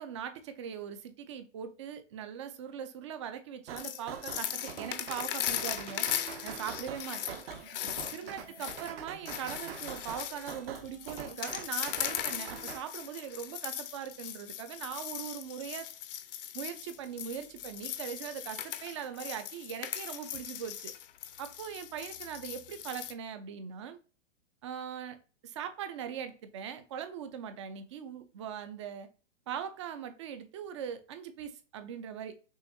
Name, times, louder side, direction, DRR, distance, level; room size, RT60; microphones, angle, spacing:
voice 1, 0.0-6.1 6.4-7.4 7.8-15.9 16.5-20.9 21.4-24.0 24.6-29.1 29.5-32.3, right 8 dB, 25° right, 0.4 m, -41 dB
sound 1, 3.7-12.8, right 7 dB, 50° right, 0.8 m, -45 dB
sound 2, 3.8-23.1, left 11 dB, 50° left, 0.6 m, -39 dB
6.3 x 2.9 x 2.6 m
hypercardioid pair, 145°, 37 cm